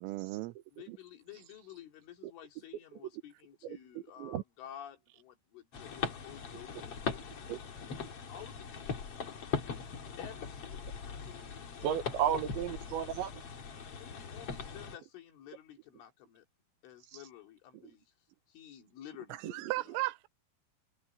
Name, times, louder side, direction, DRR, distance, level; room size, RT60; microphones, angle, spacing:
voice 1, 0.0-0.6 19.5-20.3, right 20 dB, 90° right, 3.4 m, -35 dB
voice 2, 0.7-7.6 8.3-9.6 10.2-12.2 14.0-16.5 16.8-18.1 18.5-20.0, left 10 dB, 70° left, 5.6 m, -52 dB
sound 1, 5.7-15.0, left 6 dB, 50° left, 1.8 m, -40 dB
voice 3, 11.8-13.4 19.4-19.5, right 10 dB, 75° right, 3.2 m, -33 dB
omnidirectional pair, 5.9 m